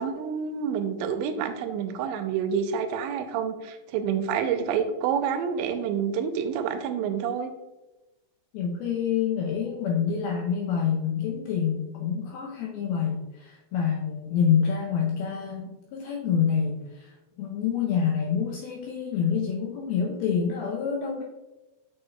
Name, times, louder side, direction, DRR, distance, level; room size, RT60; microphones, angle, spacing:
voice 1, 0.0-7.5, right 7 dB, 90° right, 7 dB, 2.9 m, -28 dB
voice 2, 8.5-17.1 17.4-21.2, left 7 dB, 80° left, -1 dB, 2.2 m, -27 dB
8.0 x 6.8 x 2.2 m, 1.0 s
omnidirectional pair, 5.1 m